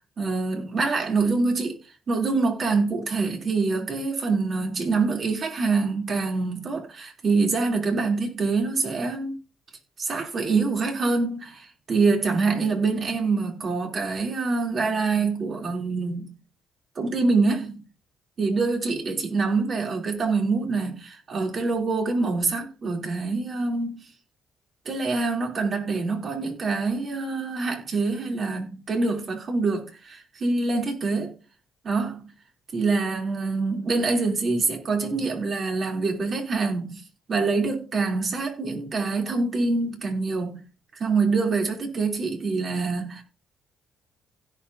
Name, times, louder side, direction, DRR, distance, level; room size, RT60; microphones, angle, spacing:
voice 1, 0.0-1.8 2.1-9.4 10.0-16.3 17.0-17.8 18.4-24.1 24.9-31.4 31.8-32.2 32.7-37.0 37.3-40.6 41.0-43.2, right 3 dB, 50° right, 3.6 m, -25 dB
16.5 x 5.8 x 2.9 m
supercardioid pair, 60°, 0 cm